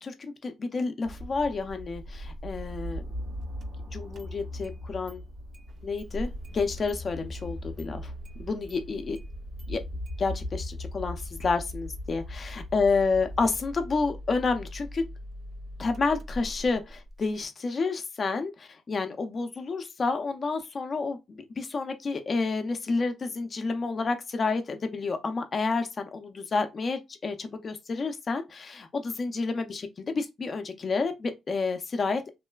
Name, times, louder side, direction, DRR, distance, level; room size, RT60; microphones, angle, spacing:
voice 1, 0.0-3.0 3.9-5.2 5.8-8.1 8.4-9.2 9.7-9.8 10.2-15.0 15.8-32.3, left 4 dB, 40° left, 0.5 m, -30 dB
Tense creepy atmosphere - underground, 1.0-13.6, left 1 dB, 80° right, 1.6 m, -40 dB
Engine starting, 3.6-3.7 4.1-4.8 5.1-5.2 5.5-17.5, equal, 50° right, 0.4 m, -42 dB
3.1 x 2.0 x 2.3 m
cardioid pair, 90°, 0 cm